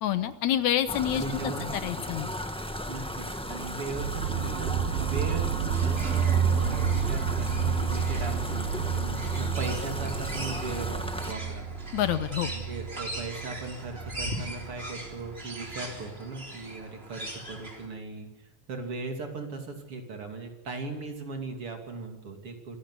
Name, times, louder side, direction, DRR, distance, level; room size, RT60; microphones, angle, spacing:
voice 1, 0.0-1.2 1.8-2.3 11.9-12.5, left 11 dB, 75° left, 11 dB, 2.2 m, -27 dB
sound 1, 0.9-11.3, equal, 10° left, 0.3 m, -36 dB
voice 2, 1.1-1.7 2.9-11.7 12.5-22.8, right 3 dB, 45° right, 4 dB, 3.6 m, -38 dB
sound 2, 4.0-15.9, right 7 dB, 65° right, 1.7 m, -30 dB
sound 3, 5.7-17.9, right 1 dB, 20° right, 3.8 m, -41 dB
25.5 x 16.5 x 8.2 m, 0.94 s
omnidirectional pair, 3.5 m